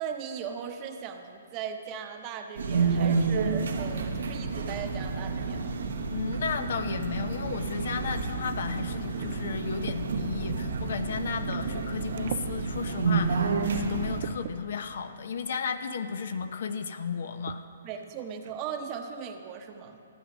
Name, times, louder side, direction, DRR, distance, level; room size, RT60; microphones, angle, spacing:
voice 1, 0.0-5.8 11.6-11.7 17.8-20.0, right 7 dB, 30° right, 6 dB, 0.9 m, -38 dB
sound 1, 2.6-14.2, right 4 dB, 75° right, 1.1 m, -30 dB
voice 2, 6.1-17.6, left 6 dB, 65° left, 9 dB, 0.8 m, -34 dB
sound 2, 9.2-10.0 10.8-10.9 11.5-11.9 12.2-12.5 13.2-13.3 13.9-14.6 15.7-15.8 16.3-16.5 17.5-17.6 18.0-18.1 18.4-18.8, right 10 dB, 50° right, 0.4 m, -40 dB
14.0 x 8.1 x 6.1 m, 2.4 s
hypercardioid pair, 140°, 0 cm